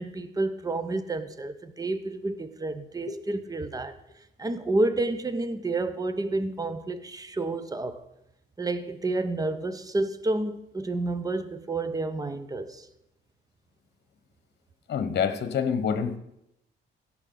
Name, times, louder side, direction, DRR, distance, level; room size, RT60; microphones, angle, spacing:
voice 1, 0.0-4.0 4.4-8.0 8.6-12.9, right 2 dB, 20° right, 0.8 m, -30 dB
voice 2, 14.9-16.2, left 7 dB, 55° left, 1.1 m, -26 dB
16.5 x 6.1 x 3.9 m
cardioid pair, 90°, 20 cm